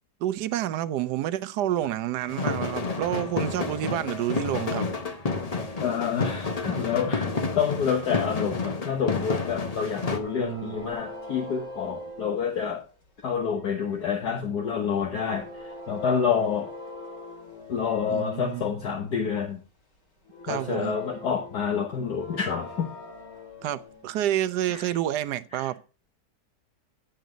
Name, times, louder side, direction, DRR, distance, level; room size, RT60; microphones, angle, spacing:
voice 1, 0.2-4.9 10.4-10.9 18.1-18.6 20.4-20.9 23.6-25.8, right 12 dB, 75° right, 1.2 m, -29 dB
sound 1, 2.3-10.2, left 4 dB, 30° left, 0.7 m, -30 dB
voice 2, 5.8-12.8 13.2-16.7 17.7-19.6 20.5-22.9 24.7-24.9 25.5-25.7, left 7 dB, 65° left, 1.7 m, -28 dB
sound 2, 8.4-13.1 13.4-18.9 19.2-19.3 20.2-24.2 25.3-25.4, left 2 dB, 45° left, 2.7 m, -43 dB
10.0 x 7.9 x 3.8 m
omnidirectional pair, 1.9 m